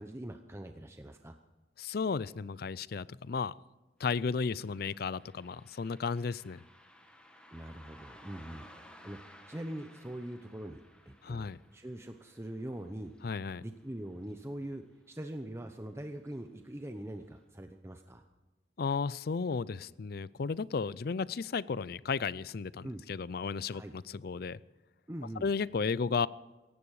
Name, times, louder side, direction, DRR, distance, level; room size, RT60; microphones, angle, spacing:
voice 1, 0.0-1.4 7.5-8.6 9.0-13.2 13.6-18.2 22.8-23.0 23.7-23.9 25.1-25.5, right 1 dB, 15° right, 6 dB, 0.8 m, -43 dB
voice 2, 1.8-3.5 4.0-6.6 11.2-11.6 13.2-13.6 18.8-24.6 25.4-26.3, left 5 dB, 60° left, 20 dB, 0.5 m, -34 dB
Car passing by, 4.0-14.8 15.1-15.2 16.2-16.3 16.8-16.9 17.4-17.5, equal, 5° left, 2.0 m, -58 dB
18.0 x 15.5 x 4.8 m, 1.2 s
head